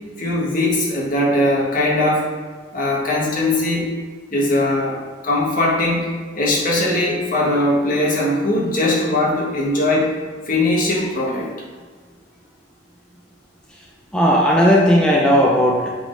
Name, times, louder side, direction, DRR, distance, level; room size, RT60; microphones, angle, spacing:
voice 1, 0.2-2.3 2.7-3.9 4.3-6.1 6.3-10.1 10.5-11.5, left 1 dB, 50° left, -4 dB, 1.6 m, -20 dB
voice 2, 14.1-15.9, equal, 5° left, -3 dB, 0.7 m, -15 dB
7.4 x 4.2 x 4.0 m, 1.5 s
head